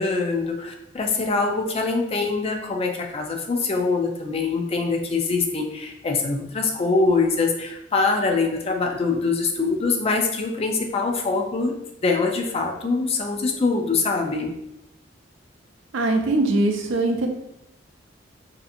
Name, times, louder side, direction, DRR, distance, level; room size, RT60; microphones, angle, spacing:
voice 1, 0.0-11.8 12.0-14.5, left 3 dB, 30° left, 3 dB, 0.4 m, -24 dB
voice 2, 15.9-17.3, right 2 dB, 85° right, 4 dB, 0.4 m, -21 dB
2.7 x 2.4 x 2.5 m, 0.82 s
head